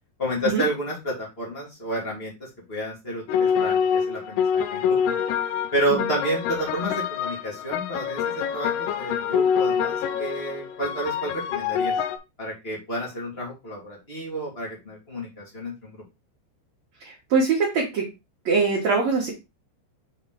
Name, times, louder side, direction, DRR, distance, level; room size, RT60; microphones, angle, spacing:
voice 1, 0.2-5.1 5.7-11.9 12.4-16.0, right 1 dB, 30° left, -4 dB, 1.1 m, -30 dB
sound 1, 3.3-12.2, left 7 dB, 80° left, 2.6 m, -25 dB
voice 2, 17.1-18.1 18.5-19.3, right 4 dB, 55° right, -3 dB, 2.0 m, -22 dB
6.9 x 4.1 x 3.8 m, 0.24 s
omnidirectional pair, 5.2 m